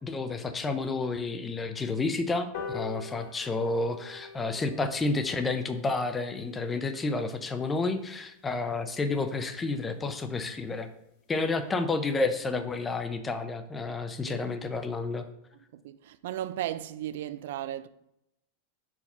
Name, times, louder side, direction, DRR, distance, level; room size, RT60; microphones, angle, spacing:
voice 1, 0.0-10.9 11.3-15.2, left 3 dB, 10° left, 0.4 m, -30 dB
sound 1, 2.5-9.3 9.7-9.8 10.1-10.2 10.5-10.6 10.9-11.0 11.3-11.6 12.0-12.1, left 5 dB, 45° left, 1.3 m, -45 dB
voice 2, 15.7-17.9, right 12 dB, 65° right, 0.3 m, -35 dB
5.7 x 4.8 x 5.4 m
supercardioid pair, 170°, 0 cm